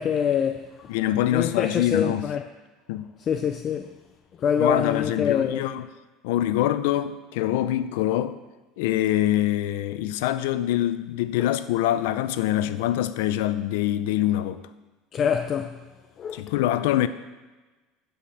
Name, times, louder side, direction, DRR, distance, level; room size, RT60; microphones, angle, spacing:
voice 1, 0.0-1.0 1.3-2.4 3.2-3.9 4.4-5.6 11.4-11.6 15.1-15.8 16.2-16.4, left 7 dB, 30° left, 0.4 m, -25 dB
voice 2, 0.9-2.3 2.9-3.1 4.6-5.9 6.2-8.3 8.8-14.6 16.3-17.1, left 13 dB, 85° left, 0.5 m, -24 dB
10.0 x 5.1 x 7.1 m
cardioid pair, 155°, 0 cm